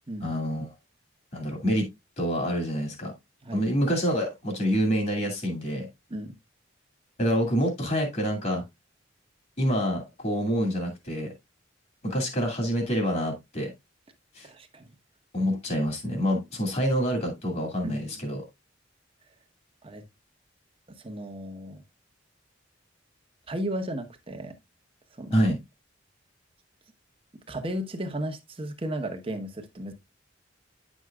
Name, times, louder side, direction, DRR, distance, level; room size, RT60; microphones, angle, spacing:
voice 1, 0.2-0.7 1.3-1.9 2.2-3.1 3.5-5.9 7.2-8.6 9.6-11.3 12.0-13.7 14.3-14.5 15.3-18.4 25.3-25.6, equal, 45° left, 2.3 m, -27 dB
voice 2, 14.4-14.9 17.8-18.3 19.8-20.0 20.9-21.8 23.5-24.6 25.2-25.3 27.5-29.9, right 1 dB, 30° right, 1.0 m, -34 dB
9.7 x 6.3 x 2.3 m
head